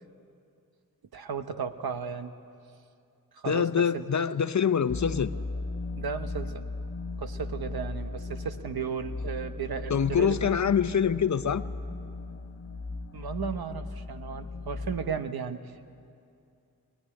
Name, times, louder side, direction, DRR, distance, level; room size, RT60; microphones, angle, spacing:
voice 1, 1.1-2.3 3.3-4.1 6.0-6.6 7.2-10.6 13.1-15.9, right 6 dB, 85° right, 9 dB, 1.1 m, -35 dB
voice 2, 3.4-5.3 9.9-11.6, left 7 dB, 50° left, 12 dB, 0.7 m, -25 dB
sound 1, 4.9-15.2, left 3 dB, 35° left, 1.1 m, -37 dB
22.0 x 20.0 x 9.9 m, 2.5 s
wide cardioid pair, 85°, 36 cm